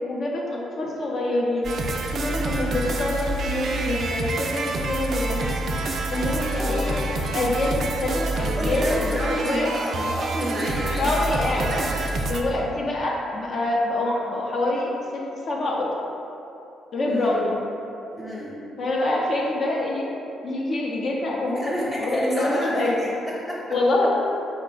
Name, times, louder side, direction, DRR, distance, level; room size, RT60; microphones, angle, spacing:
voice 1, 0.1-1.7 2.1-5.7 6.1-8.9 9.3-9.7 11.0-11.9 12.2-15.9 16.9-17.6 18.8-20.1 20.4-22.9 23.7-24.1, left 2 dB, 50° left, -2 dB, 0.6 m, -26 dB
sound 1, 1.6-12.4, right 2 dB, 60° right, 0.3 m, -27 dB
voice 2, 8.6-11.1 11.5-12.0 17.1-17.4 18.1-18.5 21.5-23.6, equal, 5° right, -5 dB, 0.7 m, -29 dB
4.1 x 2.2 x 3.8 m, 2.9 s
cardioid pair, 90°, 0 cm